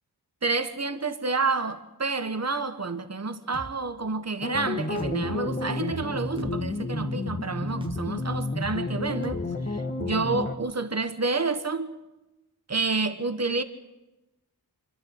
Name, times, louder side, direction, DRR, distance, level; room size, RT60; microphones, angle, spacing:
voice 1, 0.4-12.0 12.7-13.6, right 3 dB, 40° right, 1.4 m, -29 dB
sound 1, 3.5-3.7 5.0-5.2 6.4-6.6 7.8-8.0 9.2-9.4, right 1 dB, 15° right, 1.6 m, -40 dB
sound 2, 4.4-10.5, left 2 dB, 30° left, 1.5 m, -31 dB
26.0 x 12.5 x 8.1 m
wide cardioid pair, 65°, 39 cm